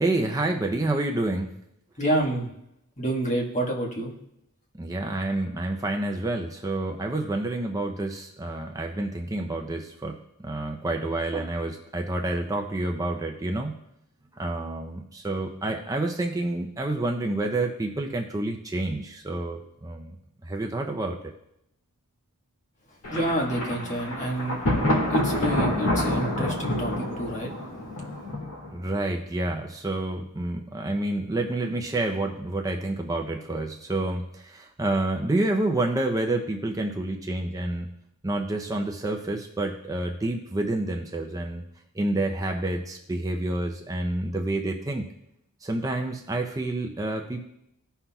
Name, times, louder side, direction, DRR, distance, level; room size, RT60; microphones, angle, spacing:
voice 1, 0.0-1.5 4.8-13.8 14.3-20.2 20.4-21.2 28.7-37.9 38.2-41.6 41.9-45.1 45.6-47.4, right 2 dB, 15° right, 2 dB, 0.6 m, -28 dB
voice 2, 2.0-2.5 3.0-4.1 23.1-24.6 25.1-27.5, right 1 dB, 35° left, -1 dB, 1.5 m, -28 dB
Thunder, 23.0-28.9, left 1 dB, 70° left, 2.1 m, -27 dB
17.0 x 5.7 x 2.3 m, 0.80 s
head